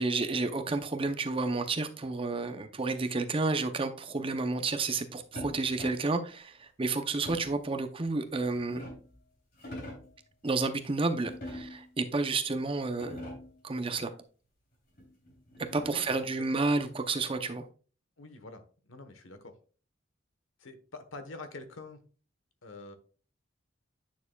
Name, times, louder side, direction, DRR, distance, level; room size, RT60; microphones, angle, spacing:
voice 1, 0.0-8.8 10.4-13.3 13.6-14.1 15.6-17.7, right 3 dB, 25° right, 0.6 m, -31 dB
sound 1, 5.4-6.2 7.2-7.7 8.3-9.2 9.5-10.2 11.2-11.9 12.5-12.6 12.9-13.6 15.0-16.1, left 1 dB, 50° left, 3.2 m, -44 dB
voice 2, 15.9-16.7 18.2-19.6 20.6-22.0 22.6-23.0, left 3 dB, 85° left, 1.1 m, -46 dB
9.5 x 6.6 x 2.3 m
head